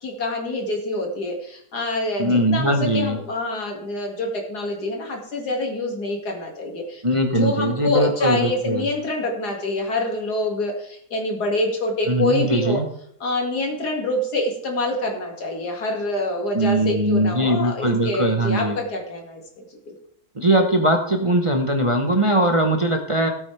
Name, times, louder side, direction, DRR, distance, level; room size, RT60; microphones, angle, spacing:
voice 1, 0.0-7.0 7.3-12.8 13.2-19.6, left 2 dB, 80° left, 1 dB, 2.7 m, -26 dB
voice 2, 2.2-3.2 7.0-8.8 12.1-12.9 16.5-18.8 20.3-23.3, right 1 dB, 25° right, 3 dB, 0.8 m, -20 dB
16.0 x 8.5 x 3.3 m, 0.67 s
omnidirectional pair, 1.7 m